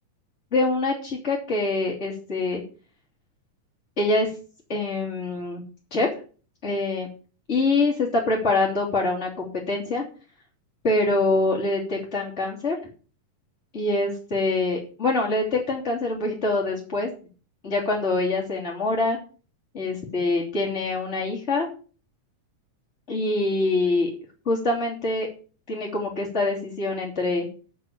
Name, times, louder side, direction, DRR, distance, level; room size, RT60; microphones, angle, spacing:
voice 1, 0.5-2.6 4.0-4.3 4.7-5.6 5.9-6.1 6.6-7.1 7.5-10.0 10.8-12.8 13.7-17.1 17.6-19.2 19.7-21.7 23.1-24.1 24.4-25.3 25.7-27.5, left 2 dB, 20° left, -6 dB, 3.0 m, -24 dB
9.3 x 6.9 x 7.1 m, 0.38 s
omnidirectional pair, 4.0 m